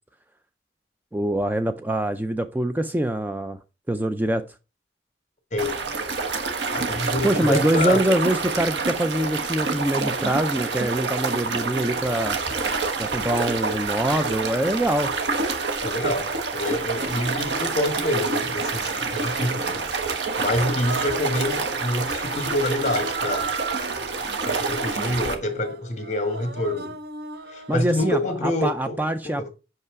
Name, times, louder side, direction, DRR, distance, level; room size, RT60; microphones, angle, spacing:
voice 1, 1.1-3.6 3.9-4.4 7.2-12.4 13.0-15.1 27.7-29.5, right 1 dB, 10° right, 0.4 m, -24 dB
voice 2, 5.5-5.9 6.7-8.0 15.8-19.8 20.4-23.5 24.4-26.9 27.5-29.0 29.2-29.3, left 1 dB, 40° left, 1.4 m, -27 dB
sound 1, 5.6-25.3, right 4 dB, 85° right, 1.2 m, -27 dB
Human voice, 16.2-16.4 17.3-18.2 18.8-19.9 20.6-21.8 22.7-27.9, right 4 dB, 60° right, 0.7 m, -37 dB
5.8 x 5.5 x 4.7 m
head